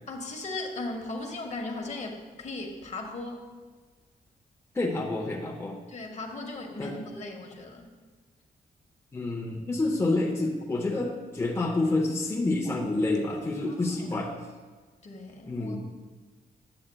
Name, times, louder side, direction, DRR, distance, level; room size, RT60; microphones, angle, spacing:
voice 1, 0.1-3.5 5.9-7.9 13.7-14.0 15.0-15.8, left 2 dB, 45° left, 3 dB, 0.9 m, -37 dB
voice 2, 4.7-5.8 6.8-6.9 9.1-14.3 15.5-15.8, left 2 dB, 15° left, -1 dB, 0.6 m, -28 dB
8.5 x 7.7 x 2.2 m, 1.4 s
wide cardioid pair, 125°, 16 cm